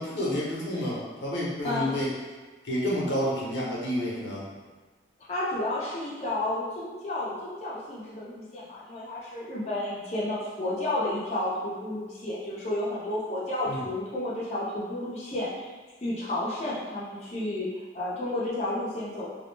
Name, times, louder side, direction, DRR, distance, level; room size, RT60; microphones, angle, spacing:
voice 1, 0.0-2.1 2.6-4.4 13.7-13.8, equal, 85° left, -6 dB, 0.7 m, -29 dB
voice 2, 1.6-2.0 5.3-15.7 16.0-17.7 17.9-19.3, left 1 dB, 35° left, -9 dB, 0.5 m, -31 dB
2.3 x 2.0 x 3.1 m, 1.3 s
head